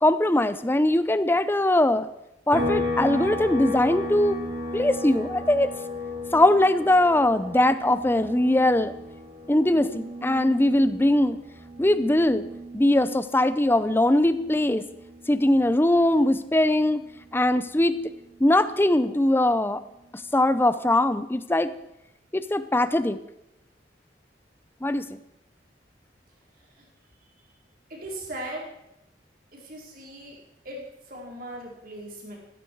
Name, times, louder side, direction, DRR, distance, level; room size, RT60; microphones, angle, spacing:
voice 1, 0.0-2.1 2.5-4.4 4.7-5.7 6.3-8.9 9.5-11.4 11.8-12.4 12.7-14.8 15.3-17.0 17.3-18.0 18.4-19.8 20.1-21.7 22.3-23.2 24.8-25.1, left 1 dB, 10° left, 13 dB, 0.6 m, -21 dB
sound 1, 2.5-16.1 16.4-18.6, left 1 dB, 35° right, 3.9 m, -35 dB
voice 2, 27.9-28.7 29.5-30.4 30.6-30.8 31.1-32.4, right 1 dB, 50° right, -2 dB, 4.4 m, -38 dB
14.5 x 13.5 x 4.7 m, 0.87 s
head